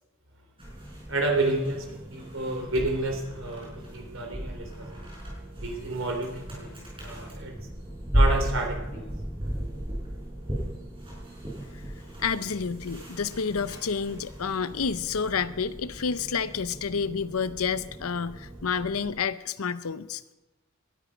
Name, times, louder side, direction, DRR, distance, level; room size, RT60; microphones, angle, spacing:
sound 1, 0.6-19.2, equal, 25° right, 5.8 m, -34 dB
voice 1, 1.1-5.0 5.6-6.7 7.0-7.6 8.1-9.1, right 2 dB, 65° right, 2 dB, 3.6 m, -30 dB
voice 2, 12.2-20.2, left 6 dB, 90° left, 15 dB, 0.7 m, -29 dB
19.0 x 12.5 x 5.1 m, 1.0 s
head